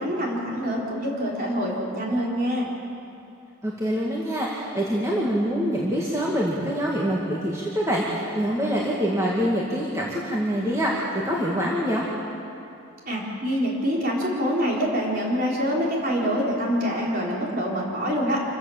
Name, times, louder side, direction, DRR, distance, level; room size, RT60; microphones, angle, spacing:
voice 1, 0.0-2.7 13.1-18.4, equal, 40° right, -3 dB, 4.2 m, -25 dB
voice 2, 3.6-12.0, equal, 15° right, -5 dB, 2.1 m, -25 dB
26.5 x 15.5 x 7.2 m, 2.7 s
head